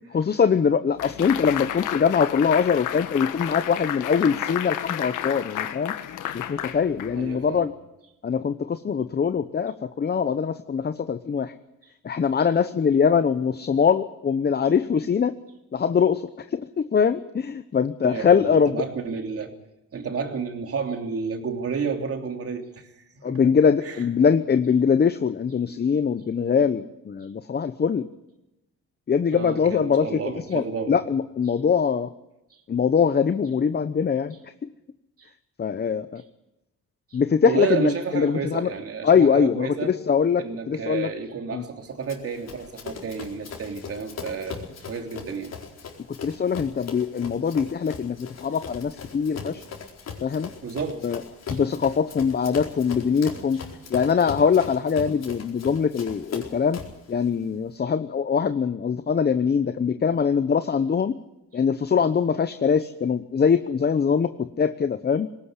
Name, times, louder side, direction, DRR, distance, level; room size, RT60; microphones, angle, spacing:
voice 1, 0.1-5.9 6.3-7.7 8.2-11.5 12.0-15.4 15.7-18.8 23.2-28.0 29.1-30.2 30.5-32.1 32.7-34.4 35.6-36.2 37.1-38.7 39.0-41.1 41.5-41.6 46.2-49.6 50.2-50.5 51.0-51.2 51.5-53.6 53.9-56.8 57.1-61.2 61.5-65.3, left 6 dB, 35° left, 11 dB, 0.9 m, -22 dB
sound 1, 1.0-7.5, left 11 dB, 85° left, 1.6 m, -31 dB
voice 2, 7.2-7.7 18.0-19.5 19.9-23.5 23.8-24.0 29.3-31.0 32.5-32.6 35.2-35.3 37.1-40.0 40.4-45.5 50.6-51.1 51.5-51.6, right 5 dB, 50° right, 4 dB, 3.3 m, -31 dB
Run, 42.1-57.0, left 5 dB, 60° left, 4.5 m, -39 dB
20.0 x 17.5 x 8.2 m, 0.92 s
cardioid pair, 90°, 30 cm